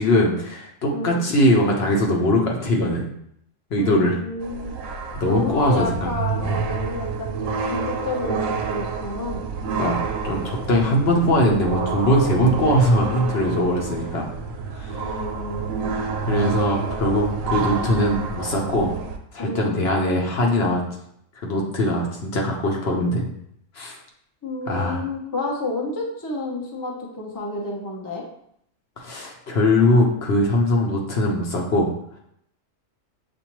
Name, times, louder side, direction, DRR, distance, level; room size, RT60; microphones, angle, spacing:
voice 1, 0.0-3.0 3.7-4.2 5.2-6.1 6.4-6.5 9.8-14.3 14.8-15.2 16.3-18.9 19.3-20.8 21.4-23.3 23.7-24.0 24.7-25.0 29.0-31.9, left 1 dB, 55° left, 0 dB, 0.9 m, -21 dB
voice 2, 0.9-1.2 3.8-4.7 5.2-9.9 15.0-16.0 19.4-19.8 24.4-28.2, left 2 dB, 25° left, -1 dB, 0.5 m, -30 dB
sound 1, 4.4-19.2, right 5 dB, 85° right, 1.0 m, -28 dB
6.7 x 2.6 x 3.0 m, 0.73 s
omnidirectional pair, 1.4 m